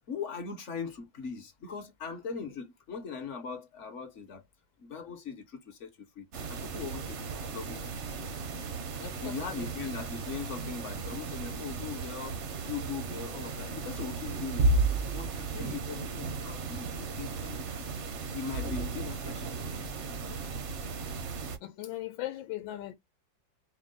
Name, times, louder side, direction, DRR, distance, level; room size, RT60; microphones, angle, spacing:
voice 1, 0.1-4.5 4.8-7.8 9.2-14.7 15.1-17.9 18.3-19.9, left 6 dB, 55° left, 0.8 m, -40 dB
sound 1, 6.3-21.6, right 3 dB, 55° right, 0.8 m, -34 dB
voice 2, 9.0-9.7 21.6-22.9, left 14 dB, 85° left, 1.3 m, -39 dB
4.6 x 2.0 x 3.7 m
omnidirectional pair, 2.1 m